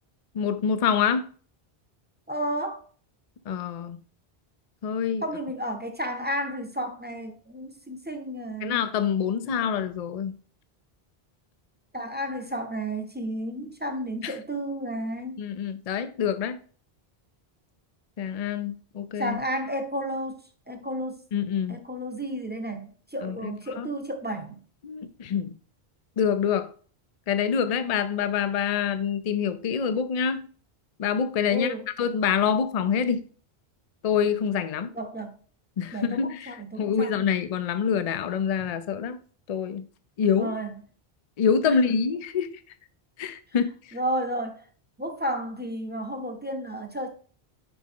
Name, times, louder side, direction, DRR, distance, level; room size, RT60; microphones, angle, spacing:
voice 1, 0.3-1.3 3.5-4.0 4.8-5.2 8.6-10.3 14.2-14.3 15.4-16.6 18.2-19.4 21.3-21.8 23.2-23.9 24.8-25.5 26.2-26.7 27.3-30.5 31.0-33.2 34.0-34.9 35.8-39.2 39.5-39.9 40.2-40.5 41.4-42.6 43.2-44.0, left 7 dB, 45° left, 0.6 m, -26 dB
voice 2, 2.3-2.8 5.2-8.8 9.4-9.5 11.9-15.4 19.2-20.4 20.7-21.2 21.7-24.6 31.5-31.9 34.9-35.4 35.9-37.1 40.3-40.7 41.6-41.8 43.9-44.6 45.0-47.1, right 1 dB, 10° right, 0.8 m, -32 dB
6.1 x 5.0 x 3.6 m
omnidirectional pair, 1.0 m